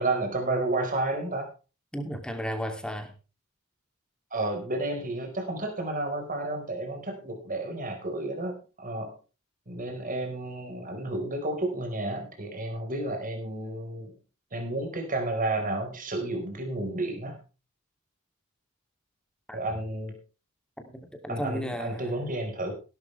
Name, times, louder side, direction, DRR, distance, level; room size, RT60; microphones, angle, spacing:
voice 1, 0.0-1.5 4.3-9.2 9.7-14.1 14.5-17.4 19.5-20.2 21.3-22.7, right 2 dB, 40° right, 3 dB, 4.7 m, -31 dB
voice 2, 1.9-3.1 19.5-19.6 20.8-22.4, equal, 5° left, 5 dB, 2.7 m, -35 dB
17.0 x 13.0 x 3.4 m, 0.33 s
head